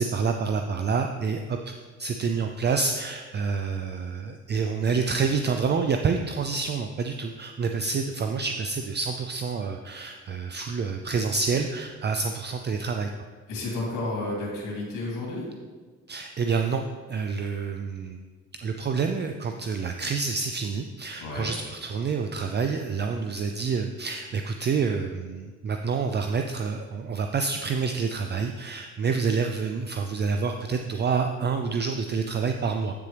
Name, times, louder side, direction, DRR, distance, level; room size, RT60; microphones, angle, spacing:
voice 1, 0.0-1.6 2.0-13.1 16.1-16.8 17.1-18.2 18.6-32.9, right 5 dB, 35° right, 5 dB, 0.4 m, -28 dB
voice 2, 13.5-15.5 21.2-21.5, left 2 dB, 90° left, -4 dB, 2.4 m, -31 dB
8.4 x 6.8 x 3.3 m, 1.5 s
cardioid pair, 90°, 30 cm